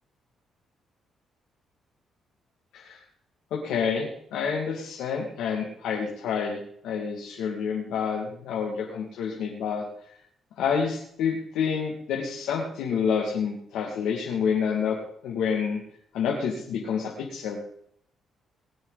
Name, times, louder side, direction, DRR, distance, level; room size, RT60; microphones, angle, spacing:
voice 1, 3.5-9.8 10.6-15.0 15.2-15.8 16.1-17.6, left 6 dB, 85° left, -2 dB, 2.4 m, -28 dB
20.0 x 9.2 x 4.1 m, 0.67 s
cardioid pair, 90°, 0 cm